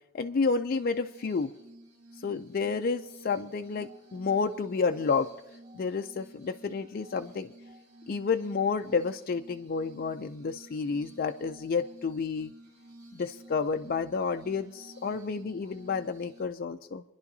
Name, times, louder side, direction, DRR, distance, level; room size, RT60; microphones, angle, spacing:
voice 1, 0.1-1.5 2.2-5.3 5.7-7.5 8.1-12.5 13.1-17.0, left 5 dB, 40° left, 6 dB, 0.3 m, -30 dB
Glass, 0.7-16.4, right 1 dB, 80° right, 1.8 m, -53 dB
26.0 x 10.5 x 2.7 m, 0.92 s
head